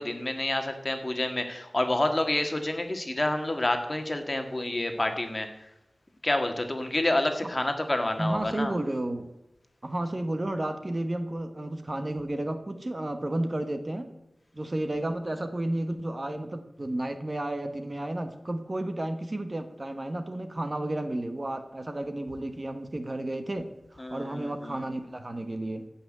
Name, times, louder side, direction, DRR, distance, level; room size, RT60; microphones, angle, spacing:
voice 1, 0.0-5.5 6.2-8.7 24.0-24.8, left 1 dB, 30° left, 6 dB, 1.8 m, -28 dB
voice 2, 8.2-9.3 9.8-14.1 14.5-25.9, right 1 dB, 35° right, 8 dB, 1.1 m, -32 dB
15.5 x 5.8 x 8.7 m, 0.92 s
wide cardioid pair, 90°, 0 cm